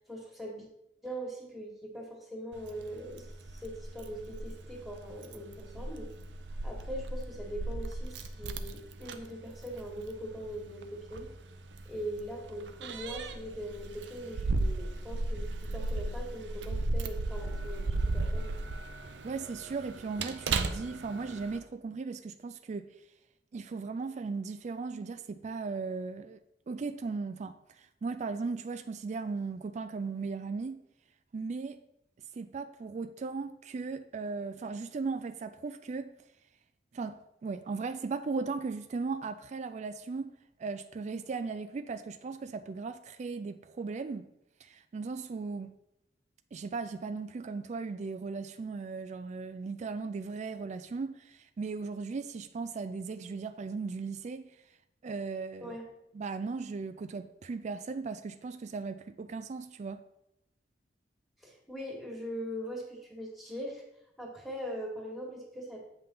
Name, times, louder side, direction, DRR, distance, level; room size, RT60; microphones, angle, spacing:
voice 1, 0.1-0.7 1.0-3.3 3.5-6.1 6.6-11.3 11.9-18.6 55.6-55.8 61.4-63.8 64.2-65.8, equal, ahead, 1.8 m, -41 dB
Keys jangling, 2.5-21.6, right 2 dB, 85° right, 0.6 m, -36 dB
voice 2, 19.2-22.9 23.5-26.4 26.7-30.8 31.3-31.8 32.4-36.1 36.9-40.3 40.6-44.3 44.6-45.7 46.5-54.6 55.0-55.8 56.1-60.0, right 4 dB, 40° right, 0.3 m, -37 dB
8.2 x 5.5 x 3.8 m
head